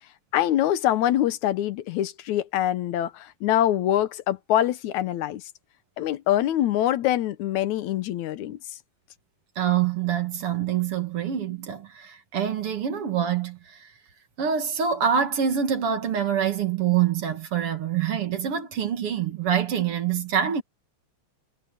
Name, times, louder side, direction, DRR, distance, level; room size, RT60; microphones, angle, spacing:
voice 1, 0.3-5.4 6.0-8.6, left 12 dB, 80° left, 2.3 m, -24 dB
voice 2, 9.6-13.9 14.4-20.6, right 8 dB, 55° right, 2.4 m, -25 dB
omnidirectional pair, 3.3 m